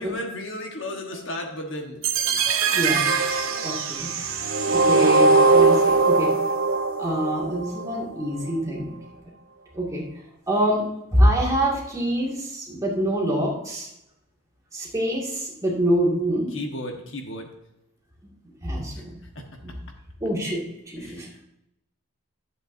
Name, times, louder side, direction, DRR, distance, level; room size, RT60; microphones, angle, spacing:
voice 1, 0.0-2.8 3.2-3.7 16.5-17.5 19.3-19.4 21.0-21.4, left 1 dB, 55° left, 3 dB, 1.2 m, -35 dB
sound 1, 2.0-8.0, right 4 dB, 65° right, 1.0 m, -20 dB
voice 2, 2.7-3.1 3.6-4.1 4.7-6.3 7.0-9.0 9.7-10.1 10.5-10.9 11.1-13.9 14.7-16.5 18.6-19.2 19.6-19.7 20.2-21.4, equal, 15° right, -3 dB, 2.0 m, -25 dB
12.0 x 7.8 x 2.6 m, 0.85 s
head